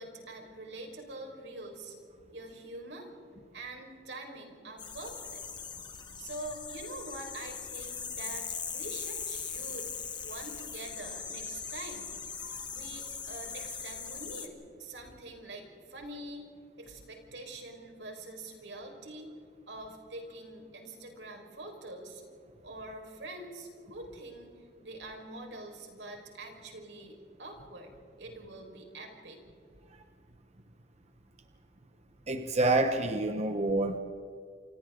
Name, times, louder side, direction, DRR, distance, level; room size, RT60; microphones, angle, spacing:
voice 1, 0.0-1.9 2.3-3.1 3.5-5.4 6.2-9.9 10.2-12.2 12.5-16.5 16.8-19.3 19.7-22.2 22.6-24.5 24.8-27.9 28.2-29.4, right 2 dB, 85° right, 2 dB, 5.0 m, -45 dB
sound 1, 4.8-14.5, left 6 dB, 25° left, 1.9 m, -40 dB
voice 2, 32.3-34.0, right 2 dB, 40° right, 6 dB, 1.0 m, -28 dB
29.0 x 27.5 x 3.9 m, 2.4 s
head